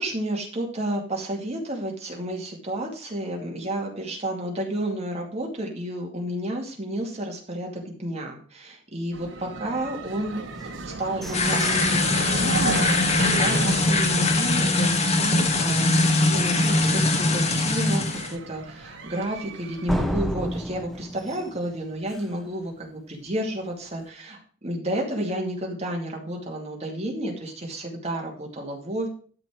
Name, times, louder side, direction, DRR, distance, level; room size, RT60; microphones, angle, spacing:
voice 1, 0.0-29.1, right 1 dB, 35° right, 0 dB, 2.5 m, -31 dB
sound 1, 9.1-20.1, right 2 dB, 70° right, 1.2 m, -33 dB
sound 2, 10.6-14.5 14.9-15.0 15.4-15.8 16.2-16.3 16.8-16.9 19.9-22.5, equal, ahead, 0.5 m, -34 dB
sound 3, 11.3-18.3, left 2 dB, 35° left, 1.4 m, -22 dB
12.5 x 4.4 x 6.1 m, 0.43 s
head